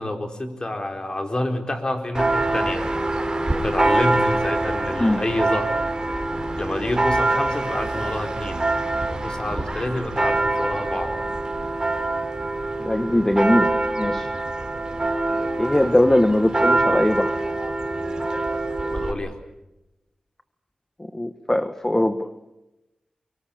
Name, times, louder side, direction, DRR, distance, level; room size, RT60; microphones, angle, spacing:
voice 1, 0.0-2.8 3.6-5.8 6.6-8.7 9.1-11.1 18.9-19.3, left 1 dB, 30° left, 5 dB, 4.3 m, -28 dB
Church bell, 2.1-19.1, right 2 dB, 30° right, 4.0 m, -24 dB
voice 2, 12.8-14.3 15.6-17.4 21.0-22.3, left 1 dB, 15° left, 9 dB, 1.3 m, -21 dB
24.0 x 23.5 x 8.5 m, 0.96 s
cardioid pair, 65°, 3 cm